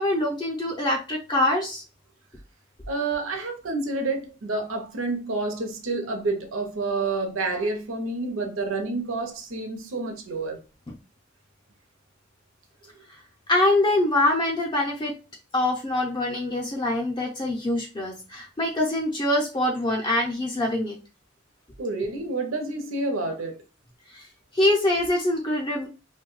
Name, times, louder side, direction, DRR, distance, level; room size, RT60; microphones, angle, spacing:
voice 1, 0.0-1.8 13.5-15.1 15.5-20.9 24.1-24.3 24.5-25.9, left 1 dB, 25° left, 0.5 m, -24 dB
voice 2, 2.9-10.6 21.8-23.6, right 3 dB, 85° right, 0.6 m, -29 dB
2.6 x 2.1 x 3.0 m
head